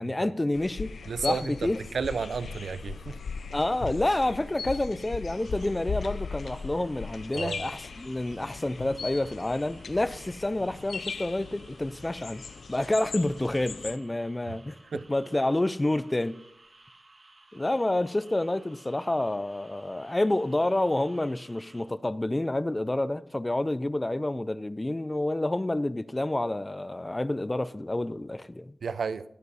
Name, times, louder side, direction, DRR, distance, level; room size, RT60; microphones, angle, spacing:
voice 1, 0.0-0.9 1.2-1.8 3.5-12.4 12.7-16.4 17.5-28.7, left 1 dB, 20° left, 0.5 m, -28 dB
sound 1, 0.5-14.0, left 5 dB, 80° left, 0.5 m, -39 dB
voice 2, 1.1-1.5 1.9-3.2 7.3-7.6 14.9-15.0 28.8-29.2, right 5 dB, 85° right, 0.5 m, -31 dB
sound 2, 5.3-21.8, right 2 dB, 40° right, 2.6 m, -56 dB
20.5 x 8.2 x 4.1 m
wide cardioid pair, 95°, 0 cm